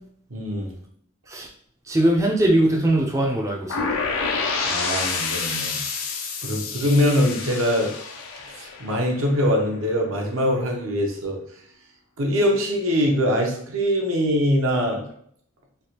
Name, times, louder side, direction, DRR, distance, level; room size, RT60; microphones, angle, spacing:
voice 1, 0.3-0.7 4.7-5.8 6.4-7.9 8.6-11.4 12.2-15.1, equal, 70° right, 1 dB, 0.8 m, -23 dB
voice 2, 1.9-3.9, right 1 dB, 15° right, -1 dB, 0.4 m, -20 dB
sound 1, 3.7-9.6, left 4 dB, 80° left, 0.5 m, -28 dB
3.3 x 2.4 x 2.8 m, 0.65 s
head